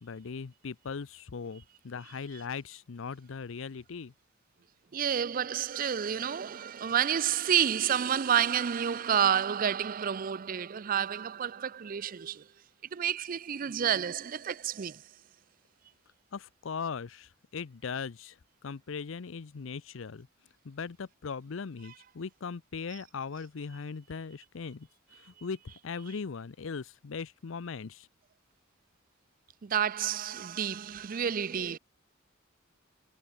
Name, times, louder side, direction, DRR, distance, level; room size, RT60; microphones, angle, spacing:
voice 1, 0.0-4.1 16.3-18.4 18.6-20.3 20.6-24.9 25.1-25.6 25.8-28.1, left 5 dB, 70° left, 0.6 m, -39 dB
voice 2, 4.9-12.5 12.9-15.0 29.6-31.8, right 8 dB, 45° right, 0.4 m, -29 dB
head